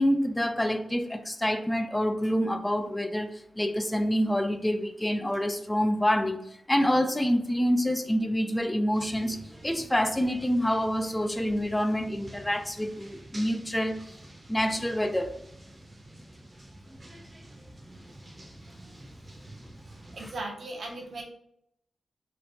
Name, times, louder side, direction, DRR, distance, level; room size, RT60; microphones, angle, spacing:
voice 1, 0.0-6.4 6.7-9.4 9.6-14.0 14.5-15.3 20.2-20.3, equal, 10° left, 7 dB, 0.3 m, -27 dB
sound 1, 8.9-20.4, right 1 dB, 30° right, 0.7 m, -48 dB
voice 2, 20.1-21.2, right 2 dB, 70° right, 0 dB, 0.8 m, -37 dB
3.1 x 3.0 x 2.7 m, 0.74 s
wide cardioid pair, 95°, 0 cm